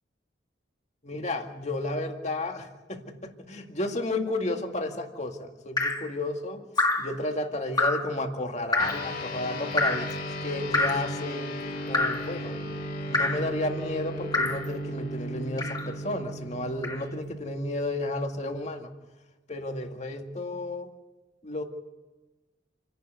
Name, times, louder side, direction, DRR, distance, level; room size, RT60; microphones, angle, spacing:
voice 1, 1.0-6.6 7.0-11.5 11.9-12.7 13.1-18.9 19.5-20.9 21.4-21.6, left 2 dB, 40° left, 4 dB, 2.1 m, -32 dB
Drip, 5.8-6.1 6.8-7.1 7.8-8.1 8.7-9.1 9.8-10.1 10.7-11.1 11.9-12.3 13.1-13.5 14.3-14.7 15.6-15.9 16.8-17.0, left 2 dB, 20° left, 1.9 m, -26 dB
sound 1, 8.8-18.5, equal, 55° left, 3.3 m, -36 dB
28.5 x 11.5 x 9.1 m, 1.2 s
head